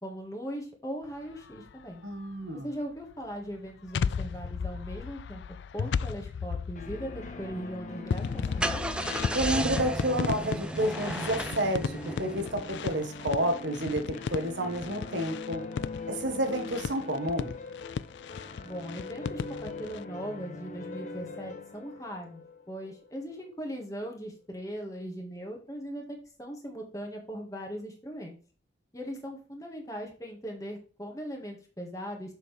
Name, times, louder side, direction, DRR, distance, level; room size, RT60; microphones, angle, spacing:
voice 1, 0.0-2.0 2.6-5.4 5.7-8.8 18.5-28.4 28.9-32.3, equal, 20° left, 1 dB, 1.6 m, -39 dB
sound 1, 1.3-1.8 3.1-20.0, left 6 dB, 70° left, 0.3 m, -35 dB
voice 2, 2.0-2.7 9.3-15.6 16.1-17.5, right 1 dB, 75° right, 4 dB, 1.5 m, -30 dB
sound 2, 6.8-23.5, left 3 dB, 40° left, 0.8 m, -42 dB
Car / Engine starting, 8.2-12.9, right 1 dB, 5° right, 0.4 m, -34 dB
6.8 x 6.3 x 3.3 m, 0.39 s
head